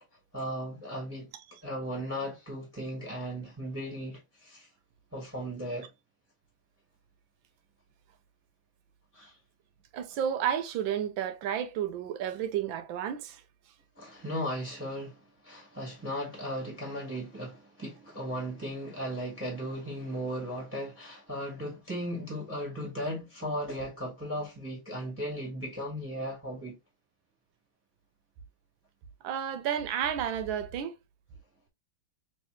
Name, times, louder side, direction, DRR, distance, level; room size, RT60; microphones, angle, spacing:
voice 1, 0.3-1.3 1.6-4.7 5.1-5.9 9.1-9.4 14.0-26.8, equal, 5° right, 1.2 m, -36 dB
voice 2, 9.9-13.4 29.2-31.0, right 9 dB, 80° right, 1.4 m, -31 dB
3.3 x 3.2 x 3.0 m
omnidirectional pair, 2.2 m